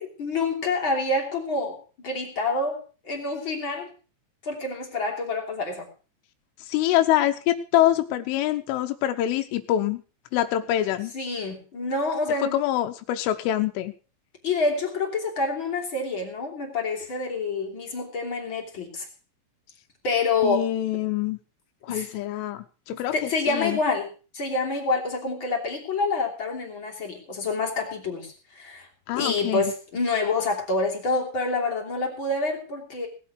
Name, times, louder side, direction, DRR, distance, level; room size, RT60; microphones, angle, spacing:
voice 1, 0.0-1.8 2.0-3.9 4.4-5.9 11.1-12.5 14.4-19.1 20.0-20.7 21.9-22.1 22.9-28.9 29.1-33.1, left 3 dB, 30° left, 1 dB, 2.9 m, -27 dB
voice 2, 6.6-10.0 10.3-11.1 12.4-13.9 20.4-21.4 21.8-23.8 29.1-29.7, left 13 dB, 85° left, 7 dB, 3.4 m, -25 dB
18.5 x 8.2 x 6.0 m, 0.37 s
omnidirectional pair, 5.6 m